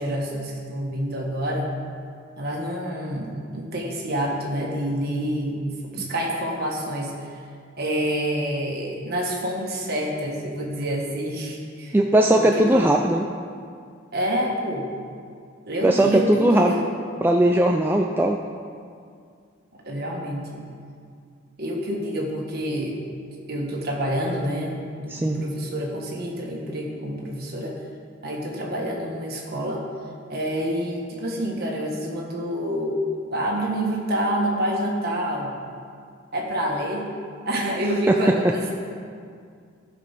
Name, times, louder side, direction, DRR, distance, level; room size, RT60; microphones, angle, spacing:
voice 1, 0.0-1.7 2.4-7.1 7.8-12.0 12.4-12.9 14.1-14.9 15.7-16.8 19.8-20.6 21.6-23.0 23.5-27.8 28.2-29.8 30.3-35.5 36.3-37.1 37.5-38.7, equal, 45° right, -2 dB, 1.7 m, -27 dB
voice 2, 11.9-13.3 15.8-16.7 17.2-18.4 25.1-25.4 38.1-38.3, right 1 dB, 10° right, 2 dB, 0.3 m, -19 dB
15.0 x 5.2 x 5.9 m, 2.2 s
head